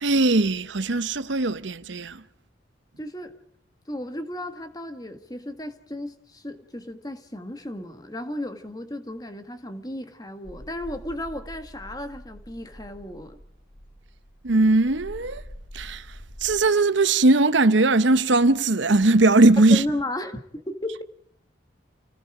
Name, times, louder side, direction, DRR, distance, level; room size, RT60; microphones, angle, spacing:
voice 1, 0.0-2.2 14.4-15.4 15.7-16.1 16.4-19.9, right 2 dB, 75° right, 0.9 m, -19 dB
voice 2, 3.0-3.3 3.9-13.4 19.7-21.0, left 1 dB, 20° left, 1.7 m, -34 dB
sound 1, 10.4-16.7, equal, 85° left, 6.2 m, -44 dB
29.5 x 19.5 x 5.0 m
head